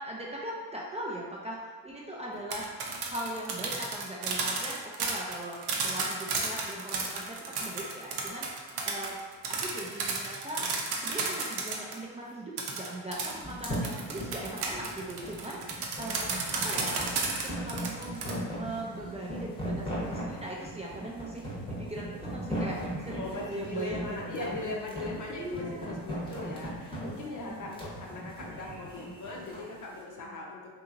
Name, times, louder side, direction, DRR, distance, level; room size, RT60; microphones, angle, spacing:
voice 1, 0.0-2.6 3.0-8.5 8.8-9.2 9.5-10.6 11.0-24.5 25.3-26.0 27.0-27.9, right 1 dB, 15° right, -4 dB, 0.4 m, -40 dB
sound 1, 2.3-12.0 12.6-18.3, right 4 dB, 65° right, 0.6 m, -33 dB
sound 2, 13.4-29.7, equal, 10° left, 0.9 m, -38 dB
voice 2, 23.1-30.8, left 2 dB, 45° left, -2 dB, 0.7 m, -39 dB
2.8 x 2.8 x 2.5 m, 1.5 s
supercardioid pair, 65°, 42 cm